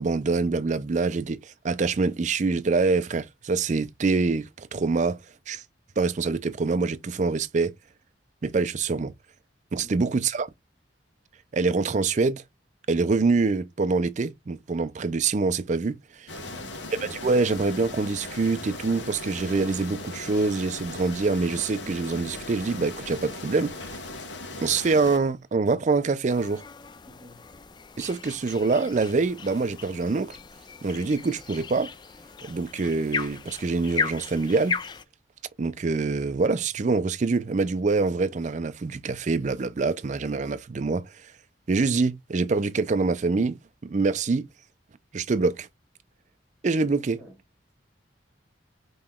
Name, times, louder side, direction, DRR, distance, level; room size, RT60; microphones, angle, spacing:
voice 1, 0.0-5.2 5.5-5.6 6.0-7.7 8.4-9.1 9.7-10.5 11.5-12.4 12.9-16.3 17.0-23.7 24.6-26.6 28.0-30.4 30.8-31.9 32.4-34.8 35.6-41.1 41.7-44.5 45.1-45.7 46.6-47.2, right 4 dB, 40° right, 0.4 m, -25 dB
voice 2, 9.8-10.1 16.4-16.8 27.0-27.5 47.2-47.4, left 1 dB, 5° right, 1.3 m, -51 dB
sound 1, 16.3-25.2, left 2 dB, 75° left, 1.2 m, -38 dB
sound 2, 26.3-35.0, left 5 dB, 25° left, 0.3 m, -36 dB
5.5 x 3.0 x 2.2 m
head